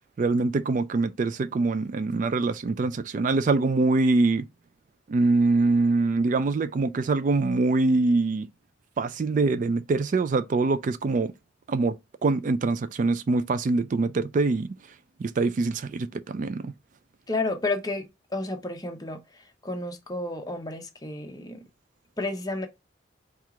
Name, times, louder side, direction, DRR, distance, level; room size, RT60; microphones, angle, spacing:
voice 1, 0.2-4.4 5.1-8.5 9.0-11.3 11.7-14.7 15.2-16.7, right 3 dB, 40° right, 0.3 m, -24 dB
voice 2, 17.3-18.1 18.3-19.2 19.6-21.6 22.2-22.7, left 2 dB, 20° left, 0.8 m, -31 dB
4.4 x 2.4 x 4.8 m
head